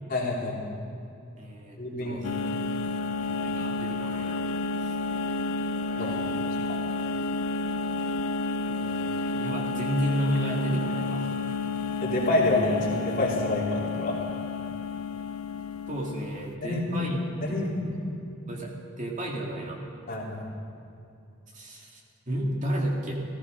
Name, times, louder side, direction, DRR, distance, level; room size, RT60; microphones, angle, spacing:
voice 1, 0.1-0.6 1.8-2.2 6.0-6.3 12.0-14.2 16.6-17.0 17.4-18.0 20.1-20.5, left 2 dB, 45° left, -3 dB, 2.9 m, -27 dB
voice 2, 1.4-2.3 3.2-4.4 4.8-5.0 5.9-6.5 8.7-11.3 15.9-17.2 17.5-18.0 18.5-19.8 21.5-23.1, equal, 35° right, -2 dB, 2.2 m, -33 dB
sound 1, 2.2-16.4, left 3 dB, 85° left, 0.5 m, -31 dB
15.0 x 15.0 x 5.2 m, 2.7 s
head